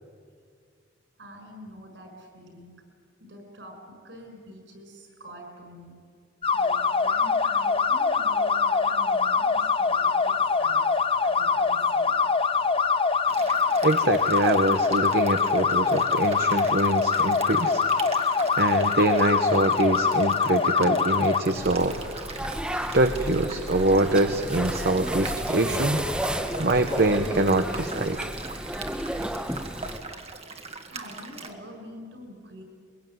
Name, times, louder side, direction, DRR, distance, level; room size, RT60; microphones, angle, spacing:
voice 1, 1.2-2.7 3.2-3.7 4.0-6.0 6.5-10.8 11.2-12.2 30.9-32.6, equal, 75° right, 3 dB, 6.7 m, -45 dB
sound 1, 6.4-21.4, left 5 dB, 30° left, 0.8 m, -23 dB
sound 2, 13.3-31.5, right 4 dB, 35° right, 1.7 m, -41 dB
voice 2, 13.8-17.8 18.1-18.2 18.6-22.1 22.9-26.0 26.6-28.2, right 2 dB, 60° right, 7 dB, 1.0 m, -24 dB
sound 3, 21.6-30.0, right 1 dB, 5° right, 1.1 m, -32 dB
22.0 x 22.0 x 9.4 m, 2.2 s
head